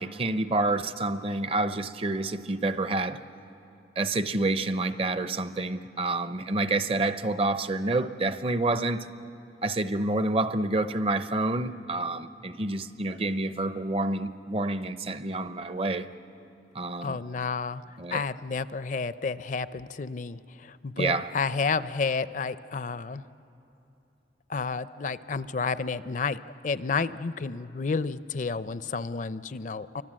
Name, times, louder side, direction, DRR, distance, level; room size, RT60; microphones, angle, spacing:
voice 1, 0.0-3.2 4.0-9.1 9.6-16.1 16.7-17.2 18.0-18.2 21.0-21.3, right 2 dB, 35° right, 0.7 m, -28 dB
voice 2, 17.0-23.2 24.5-26.4 26.6-30.0, left 4 dB, 45° left, 0.5 m, -31 dB
28.5 x 24.5 x 7.5 m
head